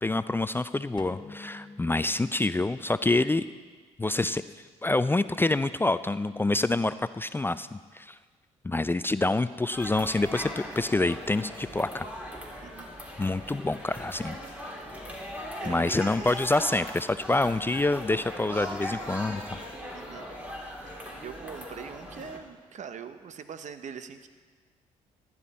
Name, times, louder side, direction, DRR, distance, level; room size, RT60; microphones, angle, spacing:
voice 1, 0.0-3.4 4.0-4.4 4.8-8.2 8.6-12.1 13.2-14.4 15.7-19.6, left 2 dB, 15° left, 14 dB, 0.4 m, -27 dB
sound 1, 1.0-3.0, left 3 dB, 30° left, 1.1 m, -47 dB
sound 2, 9.7-22.4, equal, 10° right, 3.3 m, -39 dB
voice 2, 15.6-16.2 19.9-20.3 20.9-24.3, right 7 dB, 55° right, 10 dB, 1.0 m, -42 dB
15.0 x 11.0 x 4.3 m, 1.5 s
hypercardioid pair, 55°, 15 cm